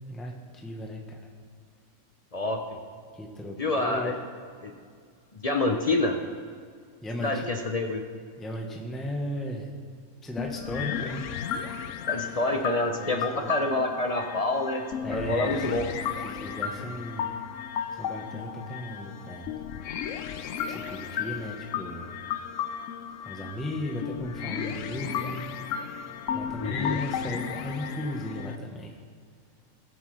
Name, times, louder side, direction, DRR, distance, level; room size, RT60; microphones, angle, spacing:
voice 1, 0.1-1.2 3.2-4.1 7.0-7.6 8.4-9.7 10.2-11.3 13.0-13.5 15.0-15.9 16.2-17.3 17.9-19.6 20.7-22.2 23.2-25.4 26.3-29.0, left 1 dB, ahead, 0 dB, 0.9 m, -36 dB
voice 2, 2.3-2.6 3.6-4.1 4.6-4.7 5.4-6.1 7.2-8.0 12.1-14.8 15.1-15.9 26.6-27.0, left 2 dB, 40° left, 3 dB, 0.5 m, -27 dB
sound 1, 10.4-28.6, left 8 dB, 65° left, 0.8 m, -34 dB
18.0 x 7.8 x 3.3 m, 2.1 s
omnidirectional pair, 1.5 m